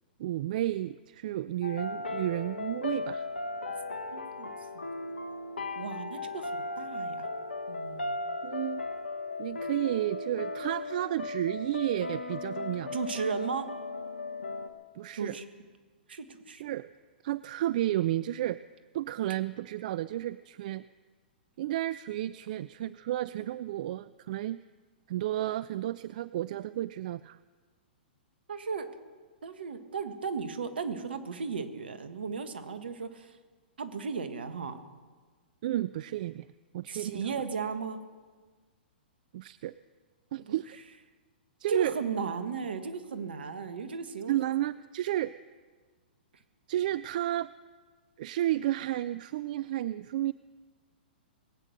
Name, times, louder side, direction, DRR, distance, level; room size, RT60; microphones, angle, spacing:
voice 1, 0.2-3.3 8.4-8.9 9.4-12.9 14.9-15.4 16.6-16.9 17.2-18.6 18.9-20.8 21.6-24.6 25.1-27.4 35.6-36.5 36.7-37.3 39.3-39.7 40.3-40.8 41.6-41.9 44.3-45.3 46.7-47.5 48.2-50.3, right 13 dB, 55° right, 17 dB, 0.3 m, -32 dB
sound 1, 1.6-14.7, left 3 dB, 85° left, 1.5 m, -37 dB
voice 2, 4.1-4.5 4.7-4.9 5.7-7.3 7.7-8.2 12.9-13.7 15.1-15.4 16.1-16.6 28.5-28.9 29.4-33.4 33.8-34.8 36.9-38.0 40.5-40.6 41.7-44.4, right 5 dB, 75° right, 9 dB, 1.6 m, -35 dB
21.0 x 9.0 x 6.6 m, 1.4 s
hypercardioid pair, 115°, 6 cm